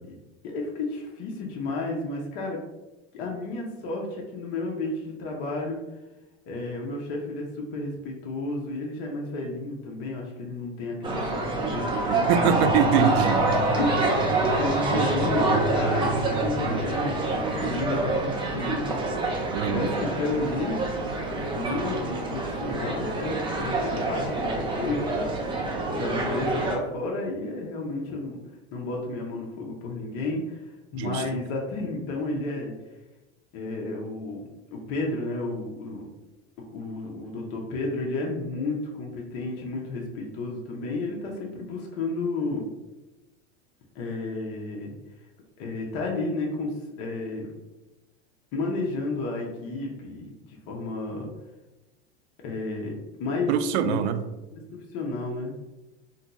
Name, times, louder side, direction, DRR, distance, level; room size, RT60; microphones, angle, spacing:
voice 1, 0.4-2.6 3.1-5.8 6.5-12.7 13.7-19.0 19.6-20.9 21.6-25.3 25.9-28.4 28.7-30.6 30.9-32.7 33.5-36.1 36.7-42.6 43.9-44.9 45.6-46.7 47.0-47.5 48.5-51.3 52.4-52.9 53.2-53.5 53.8-54.0 54.5-55.5, left 2 dB, 45° left, -1 dB, 0.7 m, -32 dB
sound 1, 11.0-26.8, right 2 dB, 15° right, 0.5 m, -26 dB
voice 2, 12.1-13.4 19.5-19.9 31.0-31.2 53.5-54.2, right 8 dB, 80° right, 10 dB, 0.5 m, -23 dB
2.6 x 2.2 x 3.9 m, 1.0 s
supercardioid pair, 125°, 32 cm